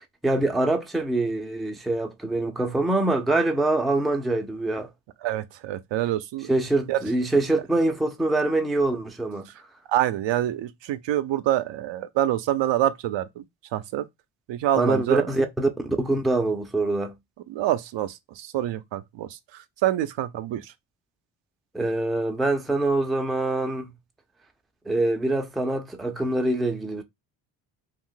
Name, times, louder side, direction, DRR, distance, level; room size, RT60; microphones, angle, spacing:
voice 1, 0.0-4.9 6.5-9.5 14.8-17.1 21.7-23.9 24.9-27.0, right 2 dB, ahead, 0.5 m, -24 dB
voice 2, 5.2-6.5 6.9-7.0 9.5-9.6 9.9-13.4 13.7-14.1 14.5-15.3 17.5-20.7, right 13 dB, 65° right, 0.5 m, -26 dB
2.5 x 2.4 x 3.8 m
supercardioid pair, 70°, 49 cm